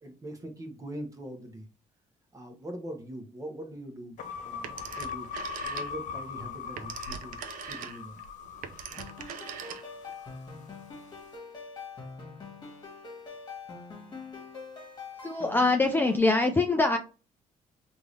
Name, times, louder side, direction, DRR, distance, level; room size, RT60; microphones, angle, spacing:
voice 1, 0.0-1.7 2.3-4.2 4.4-5.3 5.6-7.4 7.6-8.2, right 1 dB, 25° right, 5 dB, 0.9 m, -42 dB
sound 1, 4.2-10.5, left 6 dB, 65° left, 0.5 m, -40 dB
Telephone, 4.6-6.2 6.5-10.1, right 8 dB, 80° right, 0.5 m, -41 dB
sound 2, 8.9-16.2, left 4 dB, 30° left, 1.5 m, -44 dB
voice 2, 15.2-17.0, left 2 dB, 15° left, 5 dB, 0.4 m, -24 dB
3.6 x 2.6 x 3.2 m, 0.34 s
cardioid pair, 100°, 14 cm